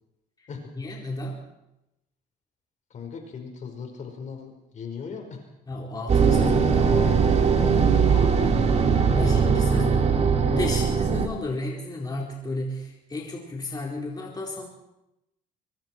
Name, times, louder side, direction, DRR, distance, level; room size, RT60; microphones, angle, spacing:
voice 1, 0.8-1.4 5.7-7.1 9.2-14.7, left 2 dB, 25° left, -2 dB, 4.3 m, -33 dB
voice 2, 2.9-5.4 8.0-8.5 9.1-10.0, left 5 dB, 45° left, 4 dB, 5.1 m, -39 dB
sound 1, 6.1-11.3, right 5 dB, 40° right, 2.4 m, -20 dB
24.0 x 23.5 x 4.7 m, 0.90 s
cardioid pair, 110°, 17 cm